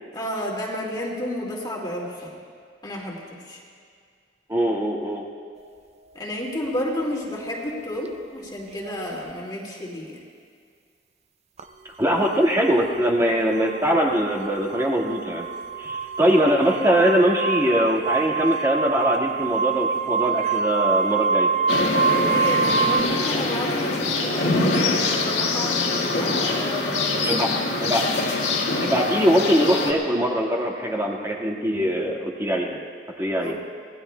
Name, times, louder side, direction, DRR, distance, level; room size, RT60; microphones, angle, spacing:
voice 1, 0.1-2.4 2.8-3.6 6.1-10.2 22.0-28.0 33.4-33.6, left 1 dB, 25° left, -3 dB, 2.1 m, -31 dB
voice 2, 4.5-5.2 12.0-15.5 15.8-21.5 27.2-27.5 27.8-28.0 28.8-32.8 33.2-33.5, equal, 15° right, -1 dB, 1.7 m, -22 dB
sound 1, 8.8-9.3 11.6-11.7 12.6-23.0, right 5 dB, 35° right, 0.5 m, -25 dB
sound 2, 21.7-29.9, left 3 dB, 70° left, 2.0 m, -24 dB
26.0 x 19.0 x 2.2 m, 2.2 s
head